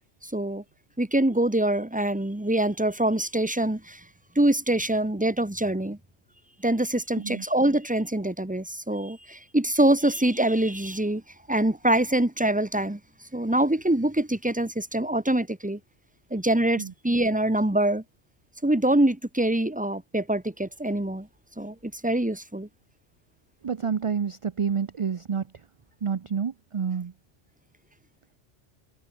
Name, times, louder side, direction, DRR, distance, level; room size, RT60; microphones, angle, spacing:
voice 1, 0.2-0.6 1.0-4.0 4.3-6.0 6.6-11.2 11.5-13.0 13.3-15.8 16.3-18.0 18.6-21.3 21.6-22.7, right 1 dB, 5° right, 1.4 m, -24 dB
voice 2, 7.1-7.4 16.8-16.9 23.6-25.4 26.0-27.1, right 6 dB, 40° right, 0.5 m, -28 dB
omnidirectional pair, 1.2 m